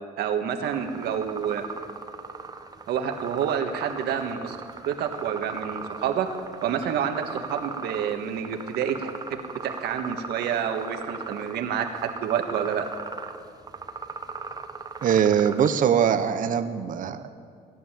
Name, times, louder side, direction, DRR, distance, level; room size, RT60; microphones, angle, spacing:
voice 1, 0.2-1.6 2.9-4.6 4.9-6.3 6.6-12.9, right 8 dB, 75° right, 6 dB, 1.6 m, -28 dB
sound 1, 0.6-15.7, right 4 dB, 20° right, 1.1 m, -38 dB
voice 2, 15.0-17.3, right 8 dB, 50° right, 10 dB, 1.0 m, -22 dB
17.0 x 11.0 x 7.5 m, 2.1 s
cardioid pair, 110°, 17 cm